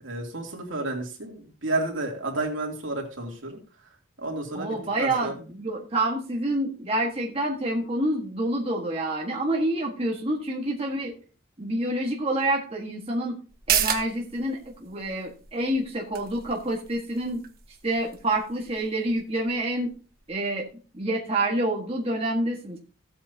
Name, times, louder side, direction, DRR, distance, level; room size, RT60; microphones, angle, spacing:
voice 1, 0.0-3.6 4.2-5.3, right 2 dB, 65° right, 1 dB, 2.9 m, -31 dB
voice 2, 4.5-11.1 11.6-13.3 13.7-17.4 17.8-19.9 20.3-20.7 20.9-22.8, right 1 dB, 30° right, -1 dB, 1.6 m, -27 dB
sound 1, 13.5-20.6 21.0-21.1, right 9 dB, 45° right, 1.3 m, -34 dB
15.5 x 8.7 x 2.8 m, 0.36 s
head